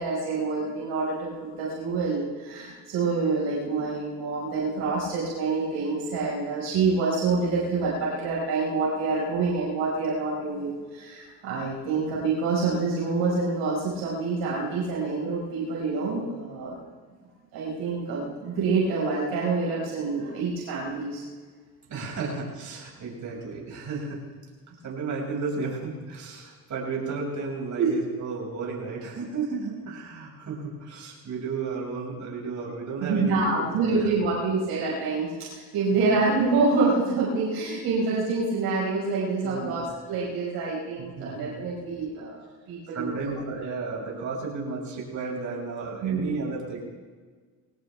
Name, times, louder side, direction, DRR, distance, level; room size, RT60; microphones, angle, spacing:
voice 1, 0.0-16.7 17.5-21.2 27.8-27.9 33.0-43.3 46.0-46.4, right 4 dB, 80° right, -5 dB, 5.3 m, -27 dB
voice 2, 21.9-24.2 24.8-33.9 35.9-36.1 39.4-39.9 41.2-41.5 42.9-46.8, right 4 dB, 50° right, -3 dB, 6.3 m, -33 dB
21.5 x 18.5 x 3.5 m, 1.5 s
supercardioid pair, 80°, 36 cm